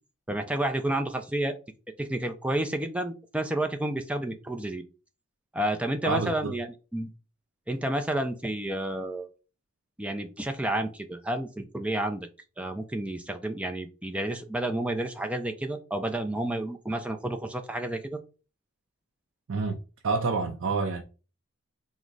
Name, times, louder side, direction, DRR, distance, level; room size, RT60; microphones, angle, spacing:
voice 1, 0.3-1.5 2.0-4.8 5.5-6.7 6.9-7.1 7.7-9.3 10.0-12.3 12.6-18.2, right 1 dB, 5° right, 0.4 m, -30 dB
voice 2, 6.0-6.5 19.5-19.8 20.0-21.0, right 4 dB, 75° right, 0.5 m, -28 dB
4.6 x 2.1 x 3.9 m
head